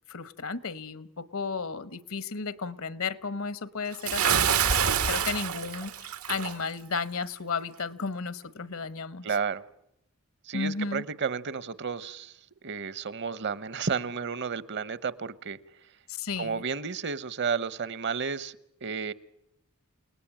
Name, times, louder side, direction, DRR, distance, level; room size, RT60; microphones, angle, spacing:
voice 1, 0.1-9.3 10.5-11.0 16.1-16.6, left 4 dB, 70° left, 16 dB, 1.2 m, -34 dB
Bathtub (filling or washing) / Splash splatter, 4.0-6.6, right 7 dB, 90° right, 1.6 m, -26 dB
voice 2, 9.2-9.6 10.4-15.6 16.4-19.1, right 5 dB, 50° right, 18 dB, 0.9 m, -32 dB
29.5 x 18.5 x 8.9 m, 0.80 s
head